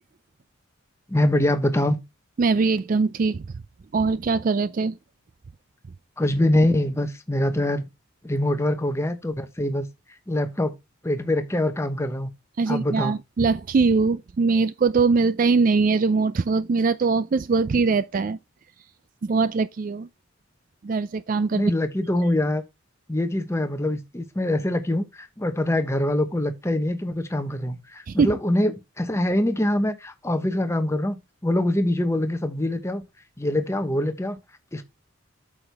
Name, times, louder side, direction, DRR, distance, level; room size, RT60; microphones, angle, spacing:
voice 1, 1.1-2.0 6.2-7.9 8.2-9.8 10.3-10.7 11.0-12.3 12.7-13.1 21.5-22.6 23.1-31.2 31.4-33.0 33.4-34.4 34.7-34.8, left 1 dB, 15° left, 1.0 m, -24 dB
voice 2, 2.4-3.5 3.9-5.0 12.6-18.4 19.2-20.1 20.8-21.7 28.1-28.3, right 4 dB, 40° right, 0.3 m, -22 dB
8.7 x 6.4 x 3.4 m
head